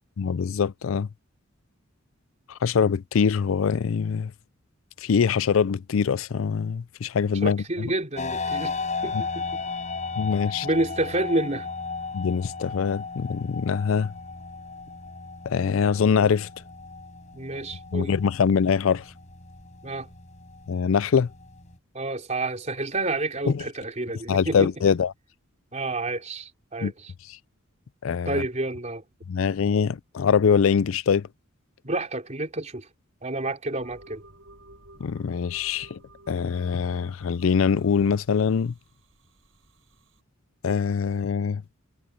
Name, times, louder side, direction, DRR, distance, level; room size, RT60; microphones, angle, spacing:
voice 1, 0.2-1.1 2.5-4.3 5.0-7.9 10.2-10.7 12.1-14.1 15.5-16.5 17.9-19.0 20.7-21.3 23.5-23.6 24.3-25.1 26.8-26.9 27.3-27.4 28.0-28.4 29.3-31.3 35.0-36.0 36.3-38.7 40.6-41.6, left 6 dB, 70° left, 0.4 m, -23 dB
voice 2, 7.4-8.8 9.0-9.6 10.6-11.7 17.3-18.1 19.8-20.1 21.9-24.7 25.7-27.1 28.3-29.0 31.8-32.9 33.2-34.2, right 2 dB, 35° right, 3.9 m, -29 dB
sound 1, 8.2-21.8, left 4 dB, 35° left, 6.5 m, -35 dB
sound 2, 33.8-40.2, right 1 dB, 70° right, 5.0 m, -53 dB
head